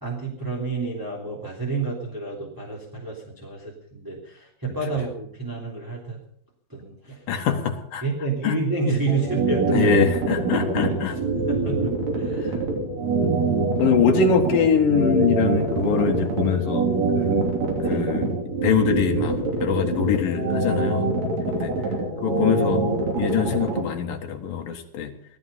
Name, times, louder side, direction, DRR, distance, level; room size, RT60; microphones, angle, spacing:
voice 1, 0.0-6.2 6.7-7.3 8.0-9.9 10.3-10.5 10.8-12.5 17.7-18.1 21.3-21.7, right 3 dB, 5° right, -4 dB, 2.6 m, -29 dB
voice 2, 7.3-8.0 8.4-8.6 9.7-11.2 11.8-12.0 13.2-13.4 13.8-16.9 17.1-17.5 17.9-18.3 18.6-21.1 21.6-21.7 22.2-22.8 23.2-25.1, left 7 dB, 65° left, 4 dB, 3.1 m, -23 dB
sound 1, 9.1-23.8, right 3 dB, 45° right, 4.0 m, -24 dB
18.0 x 14.0 x 5.6 m, 0.68 s
omnidirectional pair, 4.5 m